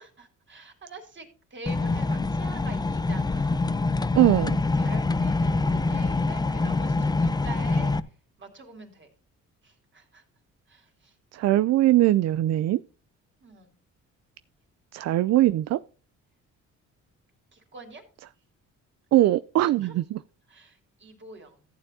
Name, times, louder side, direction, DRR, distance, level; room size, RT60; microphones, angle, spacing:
voice 1, 0.0-3.6 4.7-7.9 8.4-9.1 9.6-10.2 10.7-11.1 13.4-13.7 17.5-18.0 19.6-19.9 20.5-21.7, right 3 dB, 40° right, 3.5 m, -45 dB
sound 1, 1.7-8.0, left 3 dB, 15° left, 0.5 m, -25 dB
voice 2, 4.1-4.6 11.3-12.8 14.9-15.8 19.1-20.2, right 14 dB, 60° right, 0.4 m, -21 dB
14.5 x 8.9 x 2.7 m
cardioid pair, 90°, 30 cm